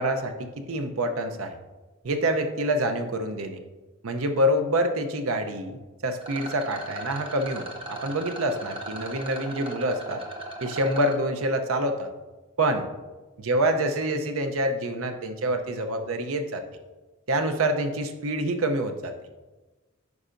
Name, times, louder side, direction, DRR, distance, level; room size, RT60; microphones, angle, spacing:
voice 1, 0.0-1.5 2.0-3.6 4.0-10.2 10.6-12.1 12.6-12.9 13.4-16.6 17.3-19.1, right 1 dB, 85° right, 6 dB, 0.7 m, -26 dB
Rattle, 6.2-11.2, right 2 dB, 25° right, 0.8 m, -38 dB
9.5 x 5.5 x 2.5 m, 1.2 s
head